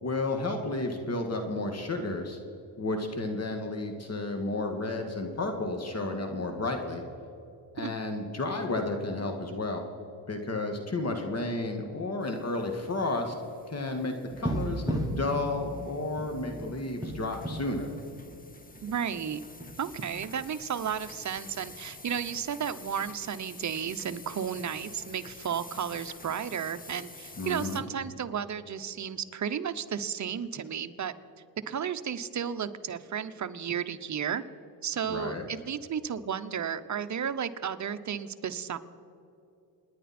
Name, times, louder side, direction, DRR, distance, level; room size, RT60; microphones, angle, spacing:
voice 1, 0.0-2.4 2.8-7.0 7.7-9.8 10.3-13.3 13.7-17.9 27.4-27.8 35.1-35.4, left 2 dB, 35° left, 4 dB, 2.0 m, -32 dB
sound 1, 12.2-27.8, left 3 dB, 20° left, 1.3 m, -49 dB
sound 2, 14.3-18.9 19.2-19.3 19.6-20.3 21.7-21.8, right 1 dB, 10° right, 1.6 m, -35 dB
voice 2, 18.8-19.4 19.8-31.1 31.7-34.4 34.8-38.8, right 8 dB, 40° right, 10 dB, 0.9 m, -33 dB
28.0 x 10.5 x 4.4 m, 2.7 s
cardioid pair, 85°, 43 cm